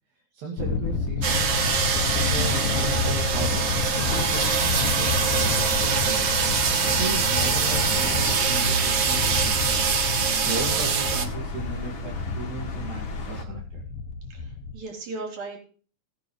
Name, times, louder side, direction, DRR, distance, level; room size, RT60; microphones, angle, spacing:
voice 1, 0.3-1.6 2.2-6.3 6.8-9.8 10.4-13.8, right 3 dB, 70° right, -3 dB, 4.1 m, -36 dB
Thunder, 0.6-14.8, left 4 dB, 70° left, 2.7 m, -30 dB
sound 1, 1.2-11.3, right 6 dB, 90° right, 1.0 m, -24 dB
sound 2, 1.3-13.4, left 2 dB, 40° left, 2.4 m, -35 dB
voice 2, 14.3-15.6, right 3 dB, 50° right, 0 dB, 5.3 m, -36 dB
19.5 x 9.7 x 3.3 m, 0.39 s
omnidirectional pair, 4.3 m